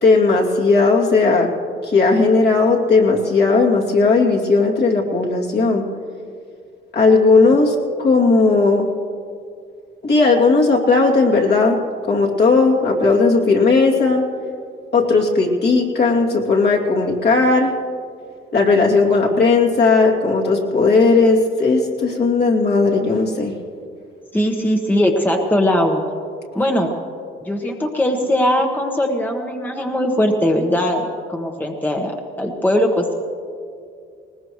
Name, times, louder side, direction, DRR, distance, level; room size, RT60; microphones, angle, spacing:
voice 1, 0.0-1.5 1.8-5.9 6.9-8.9 10.0-11.8 12.1-14.2 14.9-17.7 18.5-23.5, left 3 dB, 55° left, -1 dB, 2.6 m, -16 dB
voice 2, 24.3-26.0 26.5-26.9 27.4-33.1, left 1 dB, 10° left, 2 dB, 1.3 m, -20 dB
20.0 x 19.5 x 3.1 m, 2.3 s
cardioid pair, 90°, 20 cm